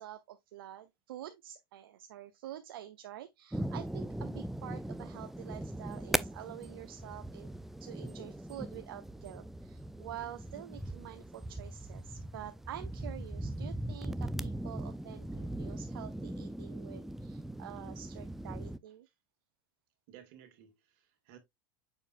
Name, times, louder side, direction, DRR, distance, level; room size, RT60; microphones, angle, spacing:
voice 1, 0.0-7.5 7.8-19.1, right 12 dB, 85° right, 0.7 m, -47 dB
sound 1, 3.5-18.8, right 1 dB, 5° right, 0.4 m, -40 dB
voice 2, 20.1-21.4, right 10 dB, 65° right, 2.0 m, -56 dB
7.1 x 5.4 x 2.5 m
supercardioid pair, 105°, 12 cm